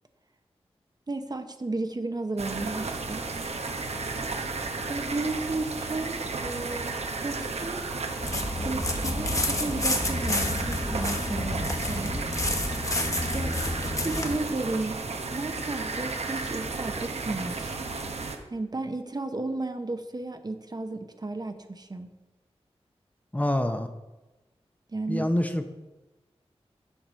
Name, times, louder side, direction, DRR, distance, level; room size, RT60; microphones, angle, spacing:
voice 1, 1.1-3.2 4.9-6.9 7.2-7.8 8.6-12.3 13.3-13.6 14.0-15.0 15.3-17.8 18.5-22.1 24.9-25.3, right 2 dB, 40° right, 8 dB, 0.8 m, -33 dB
sound 1, 2.4-18.4, right 3 dB, 75° right, 0.9 m, -33 dB
sound 2, 8.2-14.4, left 1 dB, 30° left, 1.2 m, -29 dB
voice 2, 23.3-23.9 25.1-25.6, left 1 dB, 15° left, 7 dB, 0.7 m, -26 dB
7.4 x 6.0 x 5.1 m, 1.1 s
cardioid pair, 50°, 11 cm